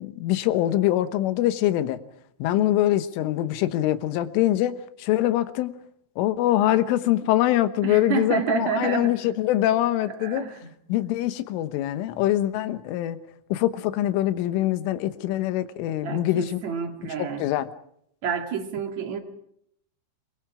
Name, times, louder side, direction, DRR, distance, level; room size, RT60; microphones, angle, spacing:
voice 1, 0.0-2.0 2.4-5.7 6.2-10.4 10.9-13.2 13.5-16.6 17.2-17.7, left 14 dB, 90° left, 11 dB, 3.7 m, -24 dB
voice 2, 7.8-9.1 10.1-10.6 16.0-17.5 18.2-19.2, right 6 dB, 45° right, 5 dB, 2.7 m, -29 dB
28.5 x 23.0 x 5.0 m, 0.72 s
omnidirectional pair, 5.5 m